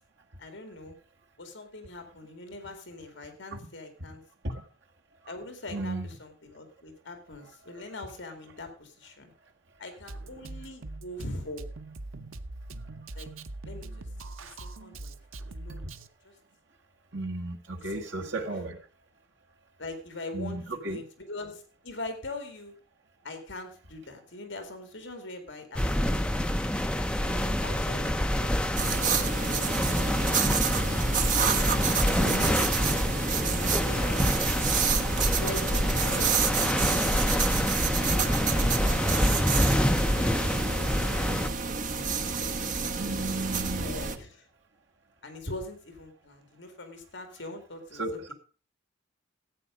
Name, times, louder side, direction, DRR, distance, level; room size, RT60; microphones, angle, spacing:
voice 1, 0.4-1.0 1.4-4.2 5.2-9.3 9.8-11.7 13.1-13.3 13.6-14.1 14.4-15.2 15.5-16.3 17.8-18.5 19.8-22.7 23.2-26.4 27.1-30.9 31.3-31.7 32.0-34.8 35.4-37.2 37.9-38.7 39.0-41.5 42.4-42.5 43.1-44.5 45.2-48.3, left 2 dB, 60° left, 2.4 m, -42 dB
voice 2, 5.7-6.1 17.1-18.8 20.3-21.0 32.2-32.4 43.0-43.9 48.0-48.3, right 2 dB, 55° right, 1.9 m, -34 dB
Drum kit, 10.1-16.1, right 2 dB, 75° right, 0.9 m, -42 dB
sound 1, 25.7-41.5, left 1 dB, 5° left, 0.5 m, -27 dB
sound 2, 28.8-44.2, right 5 dB, 40° right, 1.0 m, -29 dB
14.0 x 8.9 x 5.1 m
head